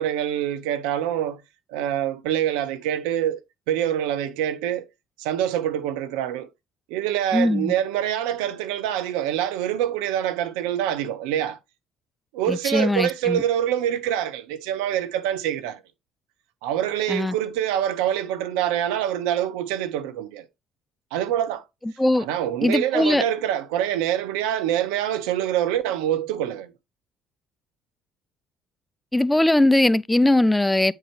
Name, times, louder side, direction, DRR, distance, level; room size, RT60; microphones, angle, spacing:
voice 1, 0.0-1.4 1.7-4.8 5.2-6.5 6.9-11.6 12.3-15.8 16.6-20.5 21.1-21.6 22.2-26.7, right 11 dB, 70° right, 0.8 m, -25 dB
voice 2, 7.3-7.7 12.5-13.4 17.1-17.3 21.8-22.3 22.6-23.2 29.1-30.9, left 1 dB, 10° left, 0.4 m, -20 dB
9.2 x 4.6 x 3.3 m
figure-of-eight pair, 50°, 0 cm